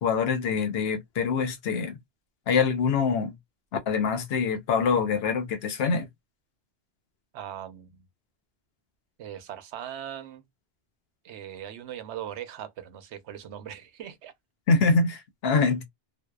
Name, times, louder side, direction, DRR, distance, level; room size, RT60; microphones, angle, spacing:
voice 1, 0.0-2.0 2.5-3.3 3.9-6.1 14.7-15.8, left 5 dB, 70° left, 0.8 m, -24 dB
voice 2, 7.3-8.1 9.2-10.5 11.2-14.3, right 10 dB, 85° right, 0.9 m, -40 dB
2.6 x 2.1 x 2.2 m
omnidirectional pair, 1.1 m